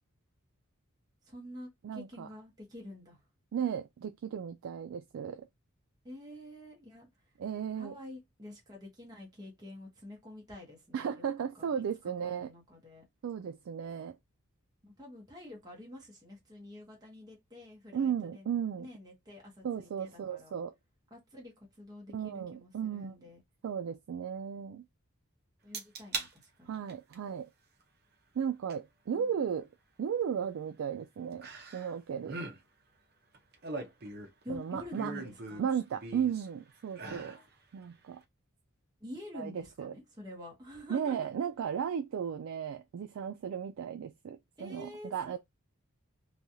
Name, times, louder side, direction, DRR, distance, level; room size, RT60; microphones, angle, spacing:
voice 1, 1.2-3.2 6.0-7.1 7.7-11.3 11.5-11.7 12.2-13.0 14.8-18.5 18.8-20.6 21.1-23.4 25.6-26.8 29.1-29.3 34.4-35.7 37.3-37.5 39.0-41.2 44.6-45.4, left 1 dB, 20° right, 0.9 m, -48 dB
voice 2, 1.8-2.3 3.5-5.4 7.4-7.9 10.9-12.5 13.2-14.2 17.9-18.9 19.6-20.7 22.1-23.2 23.6-24.8 26.7-27.5 28.4-29.7 30.0-31.5 31.7-32.4 34.5-35.1 35.6-37.4 37.7-38.2 39.3-39.9 40.9-45.4, right 8 dB, 70° right, 0.3 m, -35 dB
sound 1, 25.7-26.3 26.7-27.1 28.7-28.8 31.4-32.0 32.2-32.6 33.3-34.4 34.9-36.5 36.9-37.4 37.8-37.9, right 3 dB, 45° right, 0.7 m, -40 dB
3.1 x 2.3 x 2.6 m
head